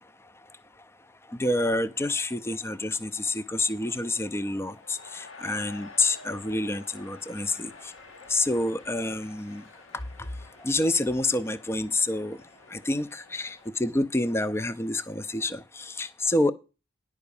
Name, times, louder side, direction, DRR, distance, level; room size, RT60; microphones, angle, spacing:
voice 1, 1.4-7.7 8.3-9.6 10.6-12.4 12.7-16.5, left 2 dB, 15° left, 13 dB, 0.4 m, -28 dB
sound 1, 3.7-13.7, left 4 dB, 85° left, 1.4 m, -50 dB
10.5 x 4.8 x 6.9 m, 0.31 s
head